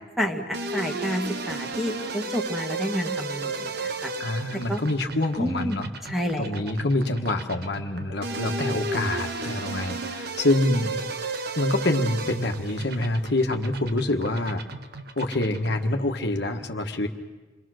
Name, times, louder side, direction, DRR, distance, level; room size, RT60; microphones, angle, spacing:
voice 1, 0.2-4.1 4.7-4.8 5.4-5.8 6.1-6.6, equal, ahead, 2 dB, 1.9 m, -29 dB
sound 1, 0.5-15.9, right 3 dB, 60° right, 1.3 m, -34 dB
voice 2, 4.2-5.9 6.4-11.0 11.6-14.6 15.2-17.1, left 1 dB, 65° left, 4 dB, 1.5 m, -26 dB
28.5 x 23.0 x 6.4 m, 1.3 s
head